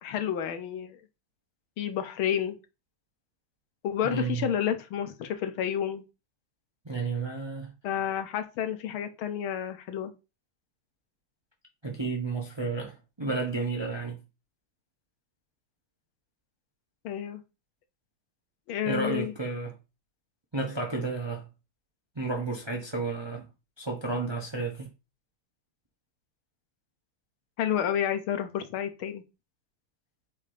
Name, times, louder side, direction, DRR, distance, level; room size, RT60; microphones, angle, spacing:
voice 1, 0.0-1.0 1.8-2.6 3.8-6.0 7.8-10.1 17.0-17.4 18.7-19.3 27.6-29.2, left 9 dB, 75° left, 1.7 m, -30 dB
voice 2, 4.0-4.5 6.8-7.7 11.8-14.2 18.9-19.7 20.5-21.5 22.2-23.5 23.8-24.9, right 3 dB, 30° right, 0.4 m, -32 dB
6.9 x 2.8 x 4.9 m
omnidirectional pair, 2.3 m